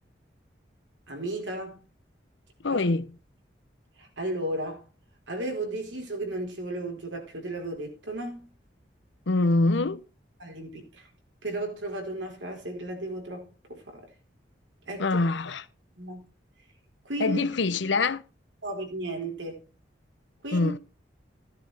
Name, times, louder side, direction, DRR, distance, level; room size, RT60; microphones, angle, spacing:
voice 1, 1.1-1.8 2.7-2.8 4.0-4.8 5.3-8.5 10.4-11.1 11.4-14.0 14.9-15.1 16.0-16.3 17.0-17.4 18.6-19.6 20.4-20.7, right 1 dB, 80° right, 4.2 m, -34 dB
voice 2, 2.6-3.1 9.3-10.0 15.0-15.7 17.2-18.2 20.5-20.8, left 3 dB, 75° left, 0.8 m, -24 dB
16.0 x 10.0 x 3.4 m
head